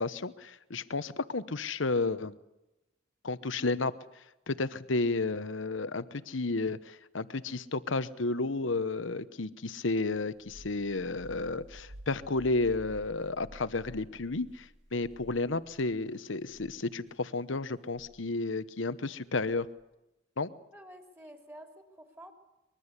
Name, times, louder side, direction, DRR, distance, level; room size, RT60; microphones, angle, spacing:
voice 1, 0.0-2.3 3.2-3.9 4.5-19.7 20.4-20.5, left 3 dB, 80° left, 14 dB, 1.0 m, -32 dB
sound 1, 10.1-16.0 16.4-16.8 17.9-18.2 19.4-19.8, right 1 dB, 75° right, 2.1 m, -52 dB
voice 2, 20.7-22.3, equal, 15° right, 5 dB, 3.0 m, -50 dB
24.0 x 22.0 x 8.3 m, 0.94 s
head